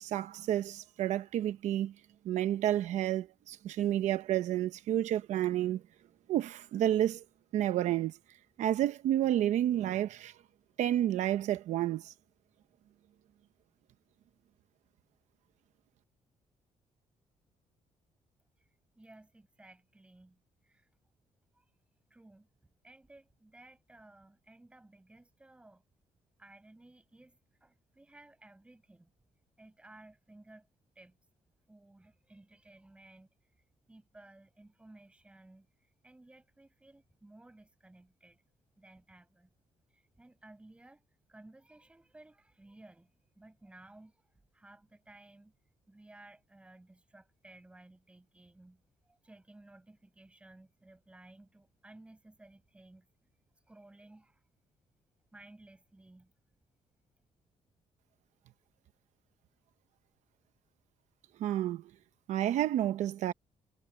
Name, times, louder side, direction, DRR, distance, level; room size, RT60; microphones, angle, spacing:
voice 1, 0.0-1.9 2.2-5.8 6.3-7.2 7.5-8.1 8.6-10.3 10.8-12.1 61.4-61.8 62.3-63.3, right 12 dB, 80° right, 0.9 m, -30 dB
voice 2, 19.0-20.9 21.5-21.6 22.1-25.8 26.4-29.1 29.6-30.7 30.9-31.2 31.7-33.3 33.9-38.4 38.8-39.5 39.9-41.0 41.3-44.1 44.5-45.5 45.9-53.3 53.7-54.4 55.3-56.3, right 2 dB, 10° right, 6.1 m, -57 dB
cardioid pair, 160°, 12 cm